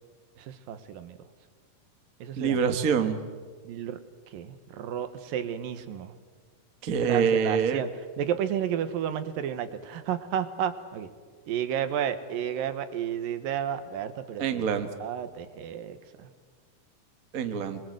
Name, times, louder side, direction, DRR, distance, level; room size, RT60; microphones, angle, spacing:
voice 1, 0.4-1.2 2.2-2.6 3.6-4.0 4.3-6.1 7.0-7.9 8.2-11.1 11.5-14.7 15.0-16.3, right 9 dB, 85° right, 11 dB, 3.0 m, -32 dB
voice 2, 2.4-3.2 6.8-7.8 14.4-14.9 17.3-17.8, right 6 dB, 50° right, 8 dB, 1.0 m, -25 dB
25.0 x 21.5 x 7.9 m, 1.6 s
omnidirectional pair, 3.9 m